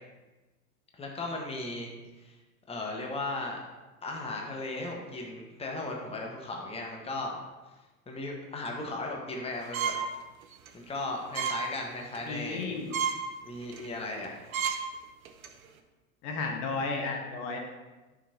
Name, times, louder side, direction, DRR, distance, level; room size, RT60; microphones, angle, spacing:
voice 1, 1.0-1.9 2.2-2.4 2.7-3.6 4.0-7.4 8.1-9.9 10.7-12.8 13.4-14.4, left 2 dB, 15° left, 0 dB, 1.4 m, -36 dB
sound 1, 9.7-10.1 10.5-10.7 11.3-11.6 12.0-12.2 12.6-12.7 12.9-13.2 13.7-13.9 14.2-14.3 14.5-14.8 15.2-15.5, right 7 dB, 70° right, 0.9 m, -30 dB
voice 2, 12.3-12.9 16.2-17.6, left 3 dB, 50° left, 2 dB, 1.4 m, -33 dB
13.0 x 5.8 x 2.8 m, 1.2 s
figure-of-eight pair, 85°, 43 cm